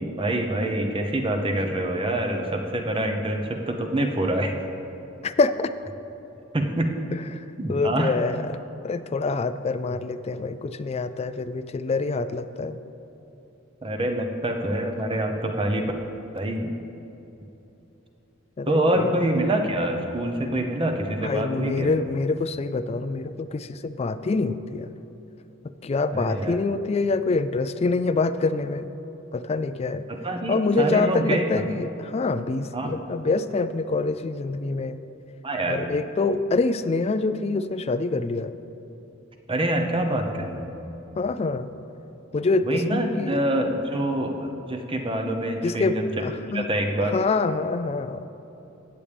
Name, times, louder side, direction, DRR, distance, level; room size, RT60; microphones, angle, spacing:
voice 1, 0.0-4.5 6.5-6.9 7.6-8.1 13.8-15.9 16.3-16.8 18.7-21.9 26.1-26.6 30.1-31.5 32.7-33.0 35.4-35.8 39.5-40.7 42.7-46.1 46.5-47.2, right 1 dB, 25° right, 4 dB, 0.8 m, -26 dB
voice 2, 5.2-5.8 7.3-8.6 8.8-12.8 18.6-19.3 21.2-24.9 25.6-28.9 29.3-30.0 30.5-35.0 35.7-38.5 41.1-41.7 42.3-43.4 45.6-46.7 47.0-48.3, left 3 dB, 30° left, 12 dB, 0.3 m, -26 dB
15.0 x 8.7 x 3.4 m, 3.0 s
head